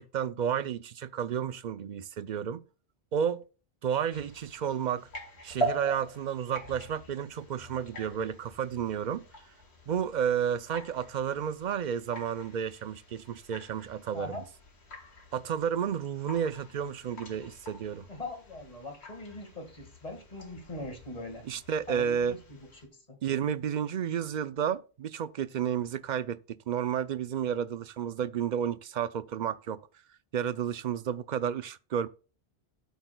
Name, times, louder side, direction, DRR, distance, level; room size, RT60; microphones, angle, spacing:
voice 1, 0.0-2.6 3.1-3.4 3.8-5.1 5.4-9.2 9.9-14.4 15.3-18.1 21.5-22.3 23.2-29.8 30.3-32.1, right 8 dB, 55° right, 0.6 m, -31 dB
sound 1, 4.1-22.9, right 1 dB, 90° left, 2.1 m, -43 dB
voice 2, 14.1-14.5 18.1-21.4 21.9-22.8 23.1-23.2, left 2 dB, 35° left, 1.9 m, -41 dB
14.5 x 8.2 x 2.3 m
omnidirectional pair, 1.1 m